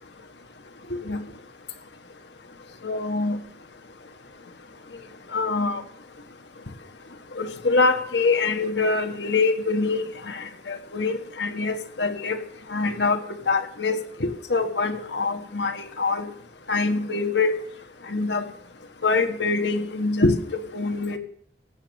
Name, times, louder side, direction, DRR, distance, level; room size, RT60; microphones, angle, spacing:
voice 1, 0.9-1.2 2.8-3.4 5.3-5.8 7.4-12.4 12.7-13.2 13.5-16.3 16.7-17.5 18.1-18.4 19.0-21.2, left 3 dB, 75° left, 7 dB, 1.5 m, -24 dB
17.5 x 8.3 x 7.0 m, 0.63 s
head